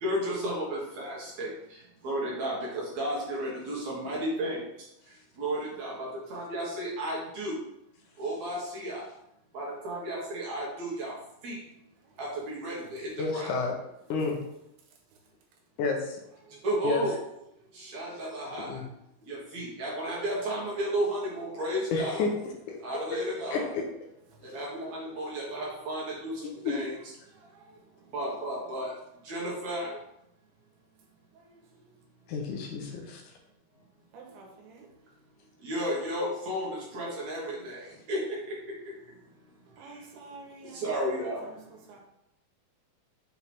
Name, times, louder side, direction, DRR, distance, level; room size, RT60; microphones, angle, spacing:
voice 1, 0.0-1.5 2.0-4.6 5.4-7.6 8.2-9.0 9.5-11.1 11.4-11.6 12.2-13.7 16.6-17.2 17.7-18.8 19.3-22.2 22.8-23.6 24.4-27.0 28.1-28.9 29.2-30.0 35.6-38.2 40.7-41.4, right 1 dB, 55° right, -5 dB, 2.5 m, -33 dB
voice 2, 13.2-13.8 14.1-14.4 15.8-16.2 16.8-17.1 18.6-18.9 21.9-22.3 22.7-23.6 26.6-26.7 32.3-33.2, left 4 dB, 75° left, 1 dB, 2.0 m, -30 dB
voice 3, 34.1-34.8 39.8-40.8 41.9-42.0, right 3 dB, 85° right, 1 dB, 3.0 m, -48 dB
6.5 x 4.9 x 3.5 m, 0.82 s
omnidirectional pair, 4.4 m